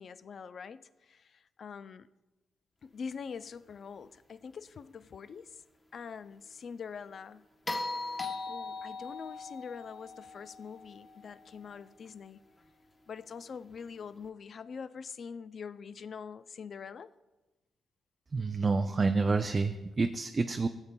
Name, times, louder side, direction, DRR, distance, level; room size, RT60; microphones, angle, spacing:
voice 1, 0.0-2.1 2.8-5.6 5.9-7.5 8.4-12.4 13.1-17.1, left 6 dB, 55° left, 0.3 m, -44 dB
sound 1, 7.7-11.9 14.2-14.3, left 3 dB, 30° left, 0.9 m, -40 dB
voice 2, 18.3-20.7, right 4 dB, 35° right, 0.3 m, -28 dB
15.5 x 7.1 x 2.2 m
cardioid pair, 80°, 0 cm